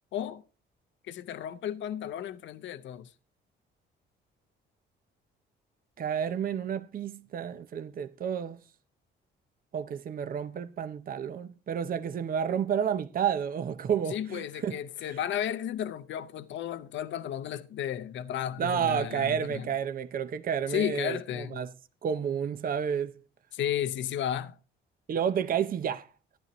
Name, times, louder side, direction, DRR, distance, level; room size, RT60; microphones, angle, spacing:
voice 1, 0.1-0.4 1.1-3.1 14.1-19.7 20.7-21.6 23.5-24.5, left 10 dB, 70° left, 0.7 m, -33 dB
voice 2, 6.0-8.6 9.7-14.8 15.0-15.2 18.6-21.7 22.0-23.2 25.1-26.1, right 8 dB, 45° right, 0.6 m, -30 dB
14.5 x 11.0 x 3.0 m
cardioid pair, 90°, 20 cm